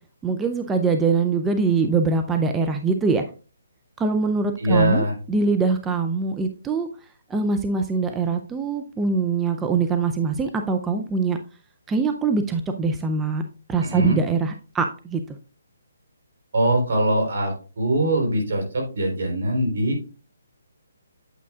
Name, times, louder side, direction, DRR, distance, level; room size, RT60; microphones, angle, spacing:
voice 1, 0.2-3.2 4.0-6.9 7.3-11.4 11.9-13.4 13.7-15.2, right 4 dB, 10° right, 6 dB, 0.5 m, -23 dB
voice 2, 4.6-5.1 13.8-14.2 16.5-20.0, right 1 dB, 65° right, 3 dB, 3.9 m, -22 dB
8.5 x 8.4 x 2.4 m, 0.35 s
hypercardioid pair, 155°, 0 cm